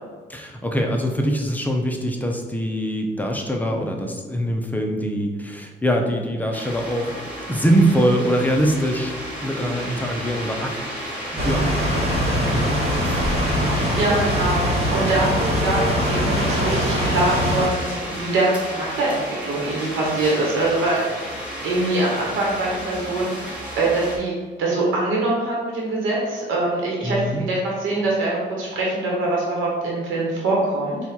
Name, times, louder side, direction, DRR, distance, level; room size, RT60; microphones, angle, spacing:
voice 1, 0.3-7.1 7.5-9.1 9.4-10.7 11.3-13.2 27.0-27.4, equal, 10° left, 2 dB, 0.6 m, -23 dB
sound 1, 6.5-24.2, equal, 5° right, 1.4 m, -32 dB
sound 2, 11.4-17.7, equal, 30° right, 1.0 m, -22 dB
voice 2, 13.7-21.3 21.6-31.0, right 2 dB, 85° right, -4 dB, 1.1 m, -23 dB
4.3 x 2.4 x 4.1 m, 1.4 s
cardioid pair, 90°, 20 cm